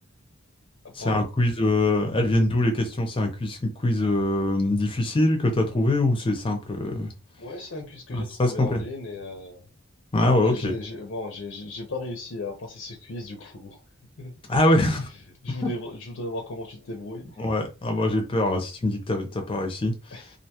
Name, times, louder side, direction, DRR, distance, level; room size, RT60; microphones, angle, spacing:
voice 1, 1.0-7.1 8.1-8.8 10.1-10.8 14.5-15.1 15.6-15.7 17.4-19.9, left 1 dB, 25° left, 0.6 m, -23 dB
voice 2, 7.4-9.7 10.4-13.8 14.2-14.3 15.4-17.4 20.1-20.3, left 2 dB, 65° left, 0.6 m, -36 dB
2.5 x 2.2 x 2.8 m
head